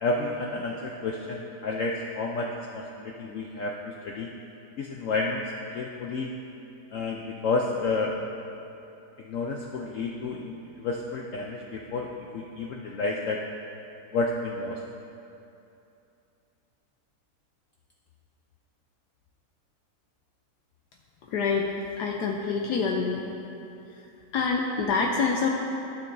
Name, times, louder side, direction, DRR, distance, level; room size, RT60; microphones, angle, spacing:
voice 1, 0.0-3.7 4.0-4.3 4.8-5.4 5.7-6.3 6.9-8.2 9.2-13.4 14.1-14.8, left 3 dB, 90° left, 0 dB, 0.6 m, -30 dB
voice 2, 21.3-21.7 22.0-23.2 24.3-25.5, left 5 dB, 70° left, 0 dB, 1.1 m, -26 dB
14.5 x 6.7 x 2.6 m, 2.7 s
omnidirectional pair, 2.0 m